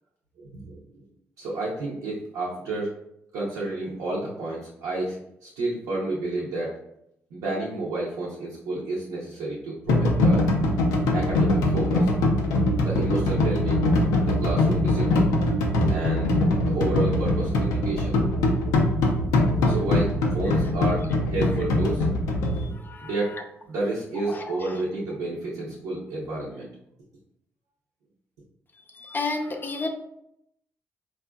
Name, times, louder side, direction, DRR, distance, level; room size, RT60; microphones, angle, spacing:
voice 1, 0.4-1.0 1.4-2.9 3.3-5.2 5.4-6.8 7.3-10.4 11.1-12.1 12.8-13.8 14.2-15.3 15.9-16.3 16.7-18.1 19.6-22.1 22.6-22.7 23.0-23.4 23.7-26.7, right 2 dB, 90° right, -6 dB, 0.7 m, -30 dB
sound 1, 9.9-22.6, left 1 dB, 90° left, 0.5 m, -22 dB
voice 2, 20.4-20.7 21.4-21.5 22.5-23.4 24.2-24.8 28.9-29.9, left 3 dB, 35° left, 4 dB, 0.6 m, -33 dB
4.1 x 2.4 x 2.3 m, 0.77 s
supercardioid pair, 55°, 6 cm